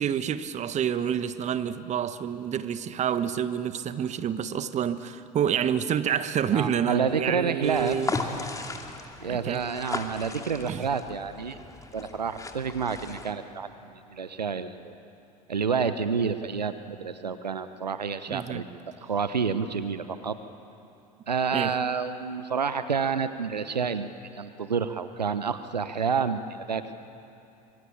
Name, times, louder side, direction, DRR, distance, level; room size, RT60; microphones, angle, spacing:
voice 1, 0.0-8.1 9.3-9.6 10.7-10.9 18.3-18.6 21.5-21.7, right 8 dB, 35° right, 12 dB, 1.3 m, -28 dB
voice 2, 6.5-8.0 9.2-11.6 11.9-14.9 15.5-18.6 19.0-20.4 21.3-26.9, right 6 dB, 85° right, 11 dB, 1.0 m, -29 dB
sound 1, 7.6-13.3, left 3 dB, 15° left, 2.7 m, -36 dB
25.0 x 24.5 x 8.7 m, 2.9 s
figure-of-eight pair, 75°, 21 cm